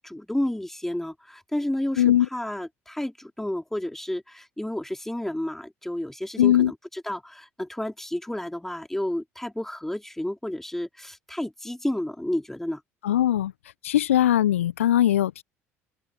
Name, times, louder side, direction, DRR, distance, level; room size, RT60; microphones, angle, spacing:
voice 1, 0.0-12.8, left 1 dB, 5° left, 3.9 m, -31 dB
voice 2, 2.0-2.3 6.4-6.7 13.0-13.5 13.8-15.4, left 12 dB, 75° left, 0.6 m, -20 dB
open air
figure-of-eight pair, 60°, 7 cm